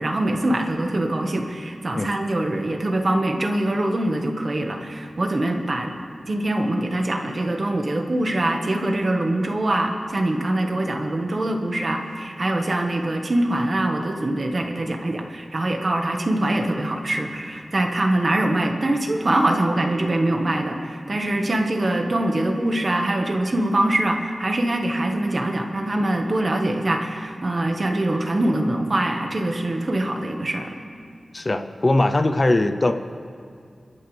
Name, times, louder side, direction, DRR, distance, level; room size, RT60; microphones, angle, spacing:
voice 1, 0.0-5.9 6.3-30.8, right 1 dB, 45° right, 3 dB, 1.5 m, -23 dB
voice 2, 31.3-32.9, left 2 dB, 35° left, 7 dB, 0.7 m, -20 dB
28.5 x 12.0 x 3.4 m, 2.3 s
wide cardioid pair, 95°, 0 cm